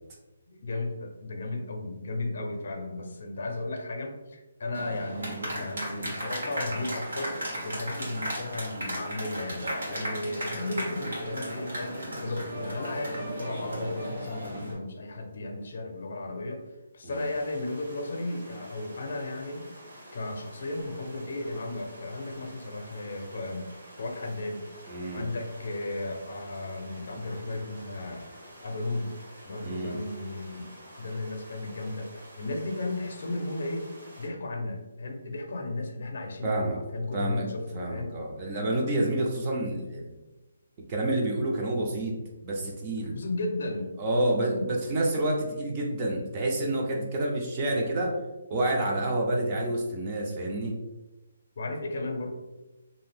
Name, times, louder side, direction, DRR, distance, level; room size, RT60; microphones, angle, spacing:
voice 1, 0.5-16.6 16.9-19.7 20.1-23.7 24.0-24.7 25.1-28.3 28.6-29.1 29.4-33.9 34.2-38.1 43.1-45.0 51.6-52.3, left 2 dB, 50° left, 3 dB, 0.6 m, -35 dB
sound 1, 4.7-14.7, right 1 dB, 75° right, 1.3 m, -35 dB
sound 2, 17.1-34.3, right 1 dB, 55° right, 1.0 m, -49 dB
voice 2, 24.9-25.2 29.6-30.0 36.4-36.8 37.1-40.1 40.9-42.2 42.4-43.2 44.0-48.2 48.5-50.8, right 1 dB, 20° right, 0 dB, 0.4 m, -28 dB
2.7 x 2.5 x 3.4 m, 1.1 s
hypercardioid pair, 175°, 0 cm